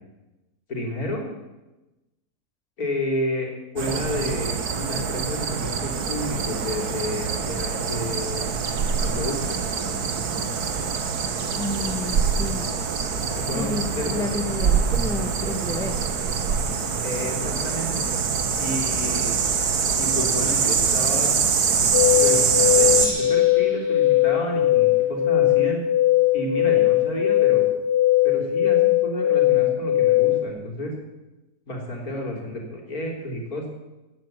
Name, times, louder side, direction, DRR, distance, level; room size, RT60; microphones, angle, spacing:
voice 1, 0.7-1.3 2.8-8.5 9.0-9.6 13.3-14.3 17.0-18.1 18.6-19.4 20.0-21.4 22.2-25.8 26.3-27.7 28.2-30.9 31.7-33.7, left 1 dB, 75° left, 0 dB, 3.9 m, -31 dB
sound 1, 3.8-23.1, right 6 dB, 90° right, 1.8 m, -24 dB
voice 2, 11.6-12.7 13.5-16.0, left 2 dB, ahead, 6 dB, 1.2 m, -30 dB
sound 2, 21.9-30.5, left 14 dB, 55° left, 0.9 m, -19 dB
Gong, 22.9-25.5, right 1 dB, 35° right, 3.0 m, -36 dB
15.5 x 8.8 x 9.1 m, 1.0 s
omnidirectional pair, 1.6 m